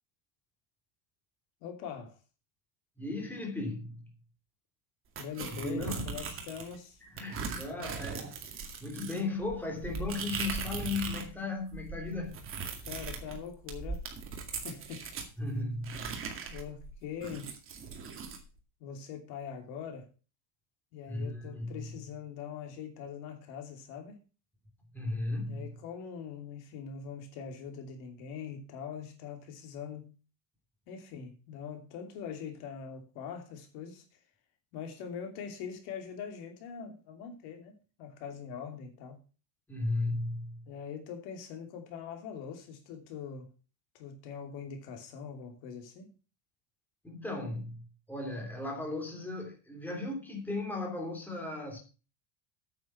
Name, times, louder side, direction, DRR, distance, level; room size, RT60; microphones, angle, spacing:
voice 1, 1.6-2.2 5.2-7.0 12.9-14.0 14.6-15.1 16.5-17.5 18.8-20.1 20.9-24.2 25.5-30.1 30.9-34.0 34.7-39.2 40.7-43.5 43.9-46.1, left 7 dB, 65° left, 2.9 m, -42 dB
voice 2, 3.0-4.1 5.4-6.1 7.0-8.4 8.8-12.4 15.4-16.0 21.1-21.8 24.9-25.7 39.7-40.6 47.0-47.8 48.1-51.8, left 2 dB, 5° left, 3.0 m, -36 dB
sound 1, 5.2-6.8 7.2-11.3 11.6-15.3 15.8-18.4, right 5 dB, 30° right, 2.2 m, -39 dB
9.0 x 7.8 x 5.9 m
cardioid pair, 165°, 41 cm